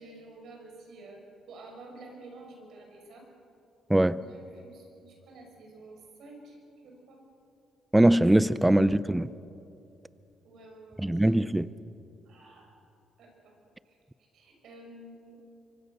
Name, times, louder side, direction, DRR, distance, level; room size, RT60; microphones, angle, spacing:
voice 1, 0.0-3.3 4.1-6.6 6.8-7.2 10.4-11.5 12.2-12.7 13.2-13.6 13.8-14.0 14.3-15.4, right 2 dB, 70° right, 6.2 m, -50 dB
voice 2, 3.9-4.2 7.9-9.3 11.0-11.7, right 1 dB, 10° right, 0.6 m, -22 dB
25.0 x 24.5 x 6.7 m
cardioid pair, 90°, 0 cm